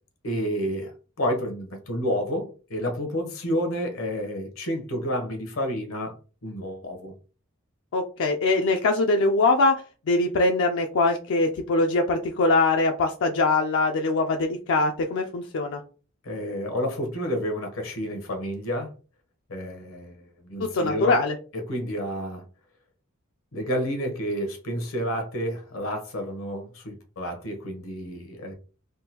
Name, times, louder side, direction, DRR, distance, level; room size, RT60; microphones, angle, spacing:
voice 1, 0.2-6.2 6.4-7.1 16.2-18.9 19.5-21.2 21.5-22.4 23.5-28.5, equal, 80° left, 4 dB, 1.0 m, -30 dB
voice 2, 7.9-9.7 10.1-15.8 20.6-21.3, left 3 dB, 65° left, 3 dB, 0.4 m, -22 dB
3.6 x 2.2 x 2.8 m, 0.36 s
head